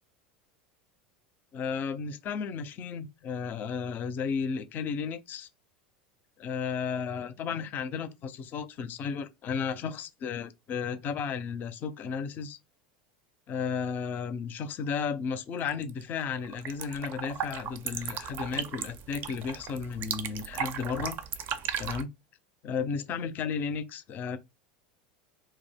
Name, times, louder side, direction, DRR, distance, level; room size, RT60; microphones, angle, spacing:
voice 1, 1.5-5.5 6.4-12.6 13.5-21.2 21.8-22.1 22.6-24.4, left 6 dB, 40° left, 0.5 m, -33 dB
sound 1, 15.7-16.0 16.3-22.0, right 8 dB, 50° right, 0.4 m, -36 dB
2.3 x 2.0 x 3.4 m
hypercardioid pair, 95°, 5 cm